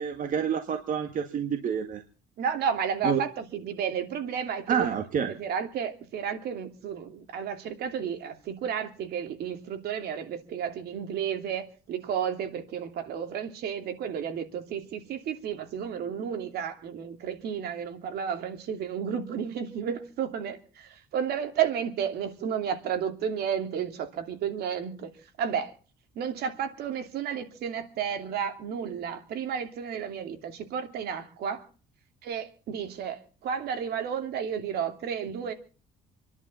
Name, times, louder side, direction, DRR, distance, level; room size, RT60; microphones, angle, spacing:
voice 1, 0.0-2.0 3.0-3.2 4.7-5.3, right 7 dB, 50° right, 1.9 m, -28 dB
voice 2, 2.4-4.9 5.3-25.1 25.4-25.7 26.1-31.6 32.2-35.5, right 7 dB, 70° right, 2.9 m, -32 dB
28.0 x 11.0 x 4.2 m
cardioid pair, 110°, 17 cm